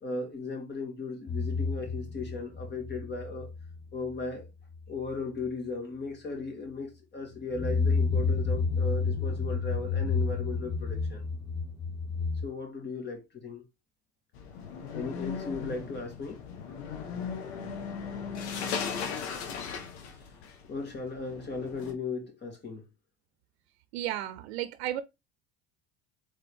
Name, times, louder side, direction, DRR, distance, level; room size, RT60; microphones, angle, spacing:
voice 1, 0.0-3.5 3.9-4.5 4.9-11.2 12.4-13.6 14.9-16.4 20.2-20.3 20.6-22.8, left 3 dB, 35° left, 2.4 m, -37 dB
sound 1, 1.3-3.8 4.1-4.5 4.7-4.8 7.4-12.4, left 4 dB, 15° left, 1.5 m, -30 dB
sound 2, 14.3-21.9, left 6 dB, 85° left, 1.3 m, -37 dB
voice 2, 23.9-25.0, right 12 dB, 85° right, 0.6 m, -33 dB
4.1 x 3.7 x 3.5 m
supercardioid pair, 85°, 32 cm